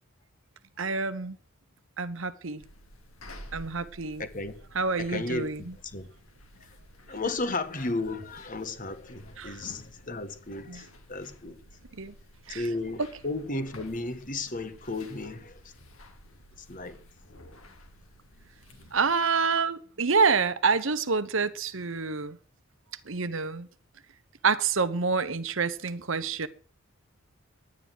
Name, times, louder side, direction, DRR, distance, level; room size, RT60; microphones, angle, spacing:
voice 1, 0.8-1.4 2.0-2.6 3.5-4.2 4.7-5.7 9.4-9.6 10.7-10.9 12.0-12.1 12.5-12.7 13.0-13.1 18.9-22.4 23.1-23.7 24.4-26.5, right 5 dB, 65° right, 1.0 m, -27 dB
sound 1, 2.6-19.2, left 1 dB, 70° left, 3.0 m, -52 dB
voice 2, 4.2-4.5 5.0-5.5 5.9-6.1 7.1-11.6 12.5-15.6 16.7-17.0 18.8-18.9, left 2 dB, 35° left, 1.5 m, -34 dB
11.5 x 9.7 x 7.7 m
head